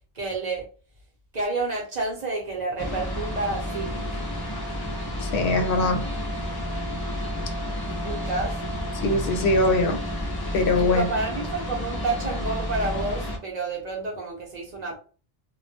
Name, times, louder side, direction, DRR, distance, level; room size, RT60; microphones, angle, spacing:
voice 1, 0.1-0.6 1.3-3.9 8.0-8.5 10.9-15.0, right 3 dB, 50° right, 0.7 m, -29 dB
sound 1, 2.8-13.4, left 1 dB, 30° left, 0.5 m, -30 dB
voice 2, 5.2-6.0 9.0-10.0 10.5-11.1, left 2 dB, 85° left, 0.8 m, -22 dB
2.2 x 2.1 x 2.7 m
omnidirectional pair, 1.0 m